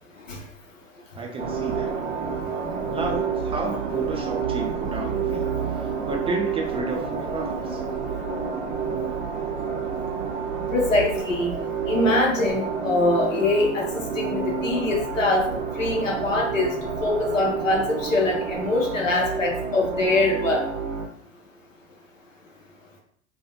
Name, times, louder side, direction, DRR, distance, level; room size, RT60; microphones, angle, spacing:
voice 1, 1.1-1.9 2.9-7.8, right 2 dB, 15° right, 0 dB, 0.4 m, -32 dB
sound 1, 1.4-21.1, right 6 dB, 70° right, 0.6 m, -29 dB
voice 2, 10.7-11.5 11.9-13.8 14.2-15.5 15.8-16.7 17.0-20.6, left 2 dB, 90° left, -1 dB, 0.8 m, -23 dB
2.4 x 2.3 x 2.9 m, 0.64 s
figure-of-eight pair, 80°, 37 cm